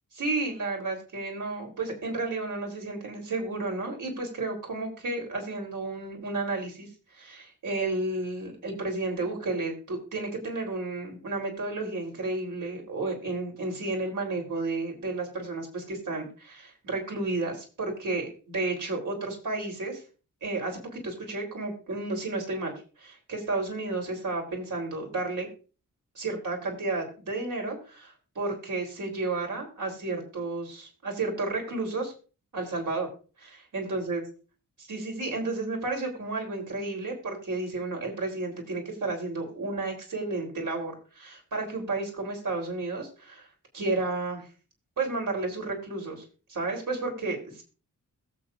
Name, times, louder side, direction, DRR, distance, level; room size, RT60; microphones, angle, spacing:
voice 1, 0.2-6.9 7.1-20.0 20.4-25.5 26.2-32.1 32.5-33.1 33.4-34.2 34.8-43.5 43.7-44.5 45.0-46.2 46.5-47.6, right 3 dB, 70° right, 1 dB, 3.7 m, -32 dB
21.5 x 7.7 x 2.5 m, 0.36 s
wide cardioid pair, 110°, 32 cm